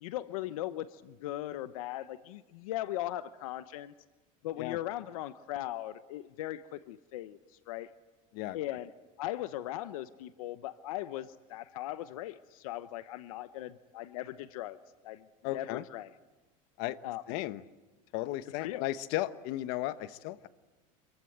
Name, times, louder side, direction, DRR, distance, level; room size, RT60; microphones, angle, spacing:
voice 1, 0.0-3.9 4.4-7.4 7.7-7.9 8.5-8.9 9.2-14.8 15.0-15.3 15.5-16.1 17.0-17.2 18.5-18.8, left 14 dB, 85° left, 14 dB, 0.9 m, -38 dB
voice 2, 15.4-15.8 16.8-17.0 17.3-17.6 18.1-20.5, left 15 dB, 60° left, 14 dB, 1.1 m, -35 dB
27.5 x 23.0 x 8.0 m, 1.2 s
supercardioid pair, 135°, 17 cm